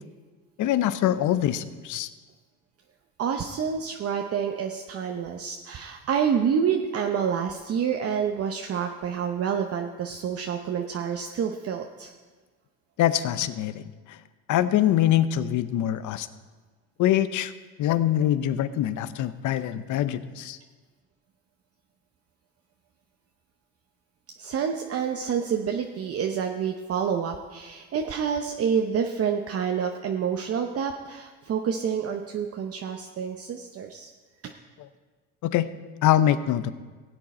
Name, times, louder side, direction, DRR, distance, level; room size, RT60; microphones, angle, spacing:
voice 1, 0.6-2.1 13.0-14.2 14.5-16.3 17.0-17.5 17.8-20.6 35.4-35.7 36.0-36.7, left 12 dB, 60° left, 13 dB, 0.7 m, -24 dB
voice 2, 3.2-12.1 24.4-34.1 34.4-34.5, right 7 dB, 45° right, 3 dB, 0.8 m, -28 dB
16.5 x 7.9 x 4.3 m, 1.4 s
supercardioid pair, 95°, 35 cm